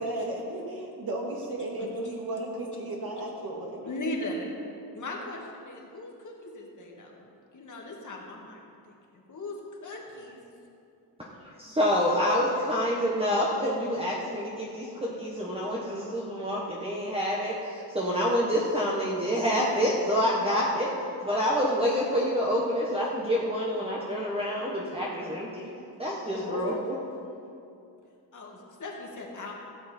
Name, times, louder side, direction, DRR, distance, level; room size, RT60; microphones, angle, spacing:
voice 1, 0.0-3.8, right 1 dB, 55° right, -1 dB, 2.2 m, -34 dB
voice 2, 3.8-4.5 4.9-7.3 7.5-8.6 9.1-9.6 9.8-10.4 26.4-26.8 28.3-29.5, left 2 dB, 45° left, -1 dB, 1.9 m, -37 dB
voice 3, 11.6-20.9 21.2-25.7 26.0-26.7, equal, 15° right, -5 dB, 1.3 m, -27 dB
16.0 x 7.7 x 4.4 m, 2.6 s
cardioid pair, 120°, 42 cm